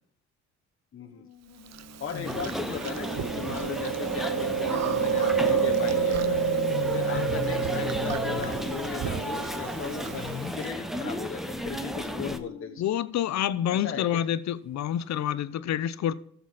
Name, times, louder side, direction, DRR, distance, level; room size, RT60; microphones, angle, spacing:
voice 1, 0.9-1.3 2.0-6.4 6.8-12.8 13.7-14.2, left 6 dB, 45° left, 1.1 m, -37 dB
sound 1, 1.1-10.7 11.1-14.2 14.7-14.8 15.1-15.2, left 10 dB, 80° left, 1.3 m, -41 dB
Chewing mastication, 1.7-10.7, right 7 dB, 60° right, 0.7 m, -29 dB
sound 2, 2.2-12.4, equal, ahead, 1.0 m, -34 dB
voice 2, 12.8-16.1, left 10 dB, 65° left, 0.7 m, -28 dB
13.5 x 6.9 x 4.1 m
cardioid pair, 90°, 30 cm